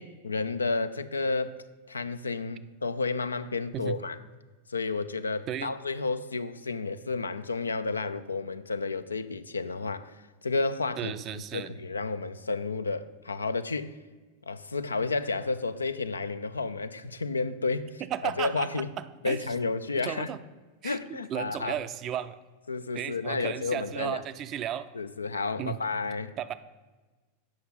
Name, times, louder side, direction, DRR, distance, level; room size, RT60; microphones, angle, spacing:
voice 1, 0.0-1.6 1.9-4.2 4.7-10.1 10.4-11.1 11.5-13.9 14.5-17.9 18.4-18.9 19.2-20.3 20.8-21.8 22.7-24.2 24.9-26.3, left 3 dB, 75° left, 0.4 m, -31 dB
voice 2, 11.0-11.8 18.0-19.4 20.0-20.4 20.8-22.4 22.9-24.9 25.6-25.8 26.4-26.5, right 10 dB, 35° right, 0.4 m, -34 dB
7.8 x 5.9 x 5.5 m
figure-of-eight pair, 90°, 0 cm